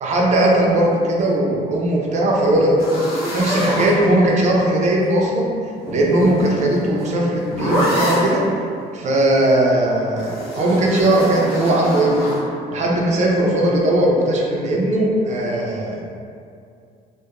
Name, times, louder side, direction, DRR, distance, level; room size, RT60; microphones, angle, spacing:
voice 1, 0.0-2.8 3.3-5.5 5.9-8.4 8.9-12.2 12.7-16.0, right 1 dB, 45° right, -2 dB, 0.5 m, -18 dB
sound 1, 2.8-4.5 5.7-8.4 10.2-12.4, equal, 85° left, 0.9 m, -25 dB
2.8 x 2.2 x 2.4 m, 2.4 s
cardioid pair, 110°, 17 cm